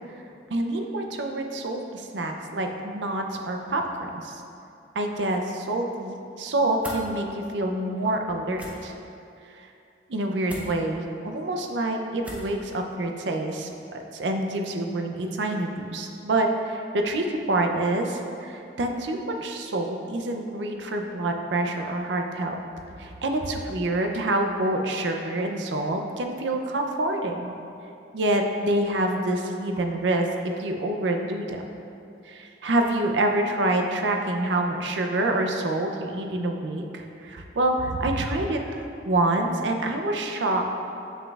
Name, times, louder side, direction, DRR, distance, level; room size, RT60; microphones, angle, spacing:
voice 1, 0.5-4.4 5.0-8.9 9.5-9.6 10.1-22.6 23.0-27.5 28.1-31.6 32.3-38.8 39.1-40.7, right 1 dB, 90° right, 3 dB, 0.6 m, -27 dB
sound 1, 6.8-7.0 8.5-8.7 10.5-10.7 12.2-12.5, equal, 10° right, 0.7 m, -38 dB
7.3 x 6.5 x 2.4 m, 2.7 s
head